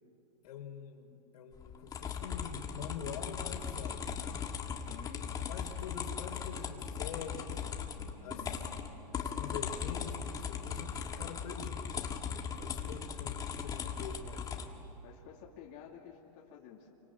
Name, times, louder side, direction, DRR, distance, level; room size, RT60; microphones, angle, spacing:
voice 1, 0.4-4.5 4.9-5.0 5.5-7.6 8.2-8.5 9.1-11.8 12.6-14.5, left 7 dB, 70° left, 5 dB, 3.6 m, -45 dB
sound 1, 1.5-14.7, left 7 dB, 20° left, 1.8 m, -38 dB
voice 2, 4.7-5.3 7.9-8.6 12.6-12.8 15.0-16.9, left 8 dB, 40° left, -2 dB, 2.7 m, -52 dB
27.0 x 25.0 x 8.6 m, 2.9 s
hypercardioid pair, 140°, 20 cm